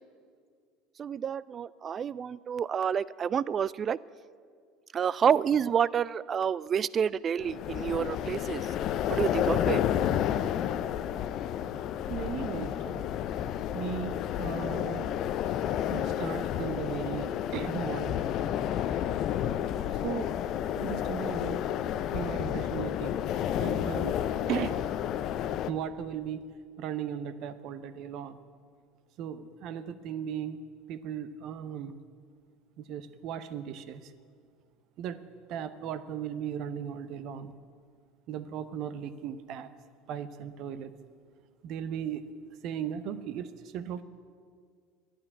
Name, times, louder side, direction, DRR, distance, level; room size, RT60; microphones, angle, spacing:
voice 1, 1.0-4.0 4.9-8.6 9.1-9.8, right 8 dB, 35° right, 21 dB, 0.3 m, -28 dB
sound 1, 7.4-25.7, left 10 dB, 50° left, 0.5 m, -31 dB
voice 2, 12.1-13.0 13.7-15.1 15.9-18.2 20.0-20.4 20.8-21.6 22.1-23.1 23.6-24.2 24.5-24.8 25.7-26.4 26.8-28.4 29.2-30.6 30.9-31.9 32.8-34.1 35.0-35.2 35.5-37.5 38.3-39.7 40.1-40.9 41.6-42.3 42.6-44.0, right 9 dB, 55° right, 13 dB, 0.7 m, -37 dB
12.0 x 9.0 x 9.6 m, 2.1 s
hypercardioid pair, 70°, 0 cm